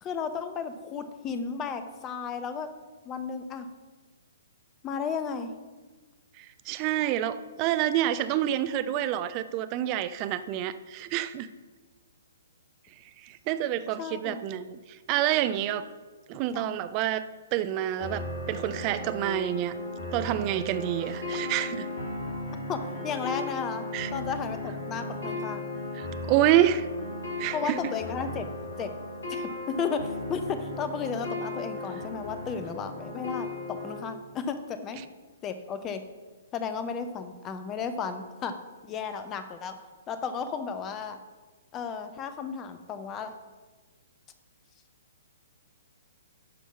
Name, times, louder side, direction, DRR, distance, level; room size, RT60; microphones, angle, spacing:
voice 1, 0.0-2.7 3.0-3.7 4.8-5.5 14.0-14.4 16.5-16.8 22.7-25.6 27.5-28.5 28.8-28.9 29.3-35.0 35.4-36.0 36.5-38.5 38.8-39.7 40.1-41.2 41.7-43.3, left 6 dB, 20° left, 10 dB, 0.7 m, -34 dB
voice 2, 6.4-11.5 13.2-15.9 16.3-17.3 17.5-19.7 20.1-21.9 23.9-24.1 25.9-26.9 27.4-27.8, right 12 dB, 30° right, 13 dB, 0.4 m, -28 dB
sound 1, 18.0-34.0, left 2 dB, 60° left, 2.3 m, -36 dB
11.0 x 4.5 x 5.8 m, 1.3 s
figure-of-eight pair, 120°, 0 cm